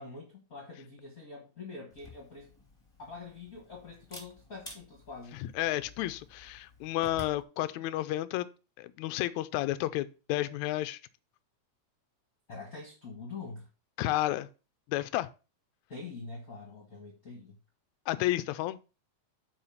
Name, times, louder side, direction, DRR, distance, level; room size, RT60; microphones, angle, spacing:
voice 1, 0.0-2.5 3.0-5.4 12.5-13.7 15.9-17.6, left 4 dB, 35° left, 1.8 m, -45 dB
Camera, 1.9-7.4, left 2 dB, 10° left, 2.0 m, -52 dB
voice 2, 5.3-8.5 8.8-11.0 14.0-14.5 14.9-15.3 18.1-18.8, left 15 dB, 85° left, 1.9 m, -31 dB
8.6 x 4.3 x 5.6 m
omnidirectional pair, 3.3 m